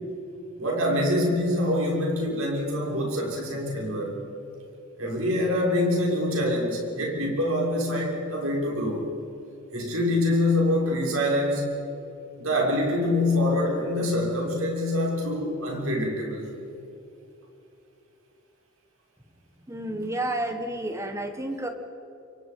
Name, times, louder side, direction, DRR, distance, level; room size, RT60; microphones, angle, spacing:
voice 1, 0.6-4.2 5.0-9.1 9.7-11.6 12.4-16.6, left 1 dB, 65° right, -1 dB, 6.5 m, -25 dB
voice 2, 19.7-21.7, right 1 dB, 15° right, 6 dB, 1.6 m, -30 dB
27.0 x 23.5 x 5.6 m, 2.8 s
head